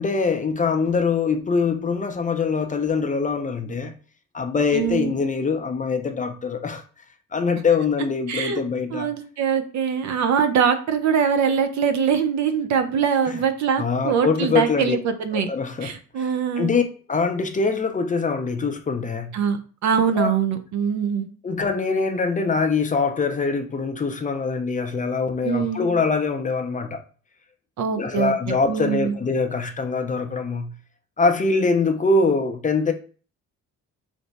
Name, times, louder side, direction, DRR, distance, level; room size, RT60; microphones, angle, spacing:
voice 1, 0.0-3.9 4.3-6.8 7.3-9.1 13.3-13.4 13.8-15.0 15.3-16.3 16.6-16.8 17.1-19.4 20.1-20.4 21.4-27.0 27.9-30.7 31.2-32.9, left 4 dB, 25° left, 0.5 m, -23 dB
voice 2, 4.7-5.1 8.3-8.6 8.9-15.5 15.8-16.7 19.3-19.6 19.8-21.3 25.4-25.8 27.8-29.1, right 7 dB, 65° right, 0.6 m, -23 dB
3.3 x 2.0 x 4.0 m
cardioid pair, 90°, 30 cm